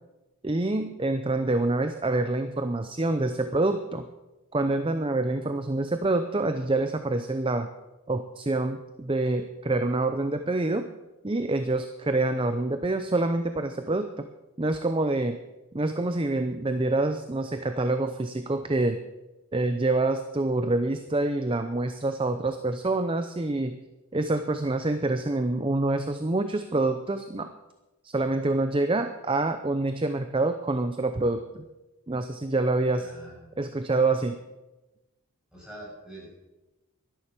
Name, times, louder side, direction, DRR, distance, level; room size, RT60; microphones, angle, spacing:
voice 1, 0.4-4.1 4.5-7.7 8.1-10.9 11.2-14.3 14.6-15.4 15.7-19.0 19.5-23.8 24.1-27.5 28.0-31.6 32.1-33.1 33.6-34.4, right 2 dB, 25° right, 8 dB, 0.6 m, -26 dB
voice 2, 33.0-33.5 35.5-36.3, right 1 dB, 5° right, -5 dB, 6.5 m, -44 dB
12.0 x 11.0 x 7.5 m, 1.0 s
head